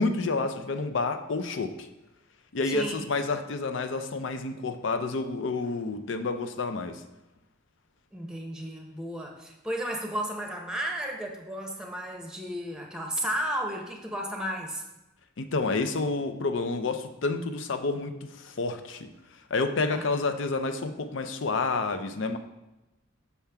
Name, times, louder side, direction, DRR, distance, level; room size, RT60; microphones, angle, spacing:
voice 1, 0.0-1.9 2.5-7.0 15.4-19.1 19.5-22.4, left 3 dB, 65° left, 8 dB, 0.5 m, -29 dB
voice 2, 2.7-3.0 8.1-14.8 19.9-20.1, equal, 5° right, 1 dB, 0.8 m, -33 dB
7.1 x 5.6 x 3.5 m, 0.98 s
head